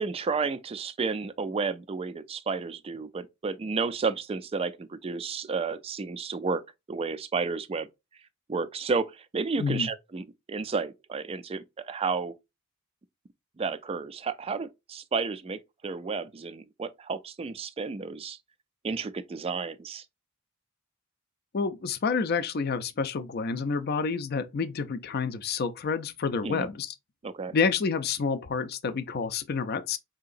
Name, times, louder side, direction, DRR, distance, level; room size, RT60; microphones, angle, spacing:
voice 1, 0.0-6.6 6.9-7.9 8.5-12.3 13.6-18.4 18.8-20.0 26.4-26.7 27.2-27.5, right 4 dB, 25° right, 0.3 m, -32 dB
voice 2, 21.5-26.9 27.5-30.0, left 5 dB, 50° left, 0.4 m, -29 dB
4.7 x 2.8 x 2.5 m
head